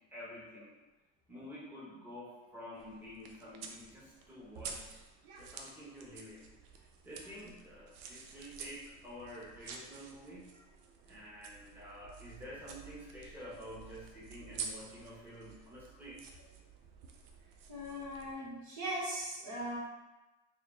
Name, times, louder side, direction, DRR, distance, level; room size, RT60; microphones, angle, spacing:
voice 1, 0.1-0.7 1.3-5.0 5.4-6.5 7.0-10.6 11.0-16.2, equal, 5° right, -6 dB, 1.2 m, -49 dB
sound 1, 2.7-18.3, right 5 dB, 65° right, 0.6 m, -50 dB
voice 2, 17.7-19.8, equal, 50° right, -6 dB, 1.5 m, -39 dB
3.5 x 2.2 x 3.8 m, 1.1 s
hypercardioid pair, 70°, 36 cm